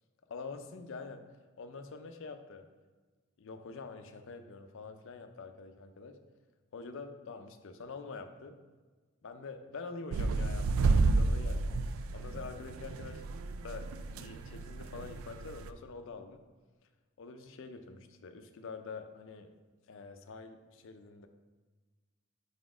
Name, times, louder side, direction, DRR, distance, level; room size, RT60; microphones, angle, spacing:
voice 1, 0.3-1.2 1.6-2.6 3.4-6.2 6.7-8.5 9.2-11.8 12.1-13.2 13.6-13.9 14.2-16.4 17.2-19.5 19.9-21.3, left 4 dB, 65° left, 7 dB, 0.5 m, -46 dB
sound 1, 10.1-15.7, right 3 dB, 70° right, 0.3 m, -31 dB
5.1 x 4.1 x 4.9 m, 1.3 s
head